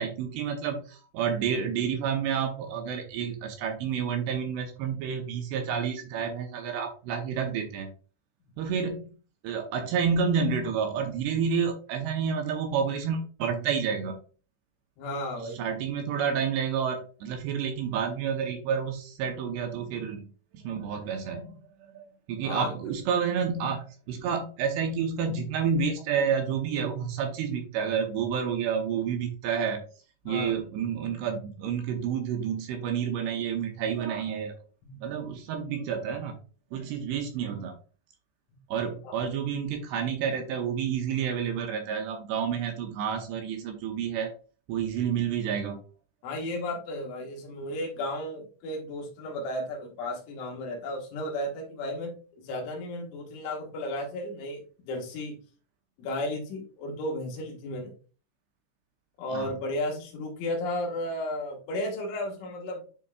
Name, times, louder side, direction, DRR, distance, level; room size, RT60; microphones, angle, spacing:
voice 1, 0.0-7.9 8.6-9.1 9.4-14.2 15.4-20.3 20.5-29.8 30.3-34.6 35.0-36.4 36.7-37.8 38.7-44.3 44.7-45.8 59.3-59.5, right 7 dB, 75° right, 4 dB, 2.6 m, -29 dB
voice 2, 15.0-15.6 22.4-22.7 30.3-30.5 34.8-35.0 38.5-38.6 39.0-39.1 46.2-55.4 56.0-57.9 59.2-62.9, left 1 dB, 80° left, 0 dB, 3.8 m, -34 dB
11.0 x 4.0 x 2.3 m, 0.39 s
omnidirectional pair, 5.4 m